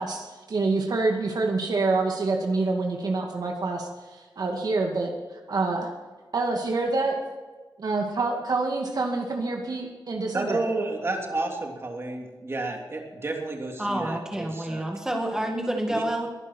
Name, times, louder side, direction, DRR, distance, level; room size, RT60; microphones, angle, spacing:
voice 1, 0.0-5.1 5.5-5.9 6.3-7.2 7.8-10.6, right 3 dB, 55° right, 2 dB, 2.1 m, -27 dB
voice 2, 10.3-14.8 15.9-16.0, right 2 dB, 30° right, 1 dB, 3.1 m, -31 dB
voice 3, 13.8-16.3, right 1 dB, 10° right, 1 dB, 2.0 m, -28 dB
22.0 x 11.5 x 4.5 m, 1.3 s
wide cardioid pair, 170°, 8 cm